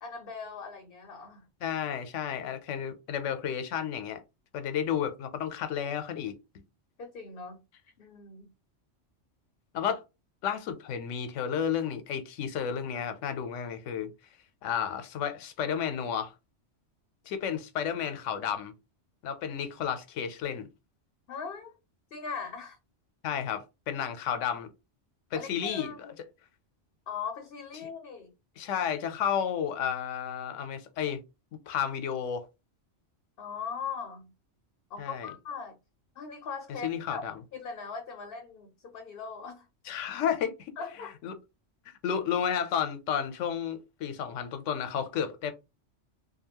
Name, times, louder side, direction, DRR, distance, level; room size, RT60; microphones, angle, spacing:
voice 1, 0.0-1.5 7.0-7.6 8.0-8.5 21.3-21.7 22.1-22.8 25.3-26.1 27.1-28.3 33.4-34.3 34.9-35.8 36.2-37.2 37.5-39.7 40.8-41.1, left 5 dB, 60° left, 0.7 m, -40 dB
voice 2, 1.6-4.2 4.5-6.3 9.7-10.0 10.4-14.1 14.6-16.3 17.3-18.7 19.2-20.7 23.2-24.7 25.3-25.9 27.8-27.9 28.6-31.2 31.7-32.5 35.0-35.3 36.8-37.4 39.8-40.7 41.2-41.4 42.0-45.5, left 8 dB, 85° left, 0.9 m, -32 dB
2.6 x 2.3 x 2.8 m
omnidirectional pair, 1.2 m